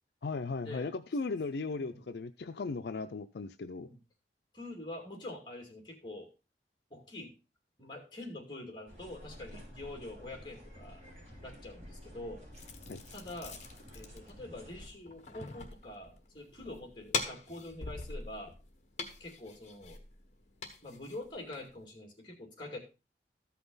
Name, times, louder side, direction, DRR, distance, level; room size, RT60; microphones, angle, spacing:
voice 1, 0.2-3.9 12.9-13.0, left 3 dB, 70° left, 9 dB, 0.5 m, -37 dB
voice 2, 4.5-6.3 6.9-7.3 7.8-11.0 11.4-12.4 13.1-13.6 13.9-18.5 19.2-20.0 20.8-22.8, left 2 dB, 25° left, 2 dB, 2.4 m, -45 dB
sound 1, 8.9-14.9, equal, 40° right, 3.7 m, -51 dB
sound 2, 12.5-21.8, left 4 dB, 40° left, 1.3 m, -43 dB
13.5 x 5.8 x 3.9 m, 0.30 s
head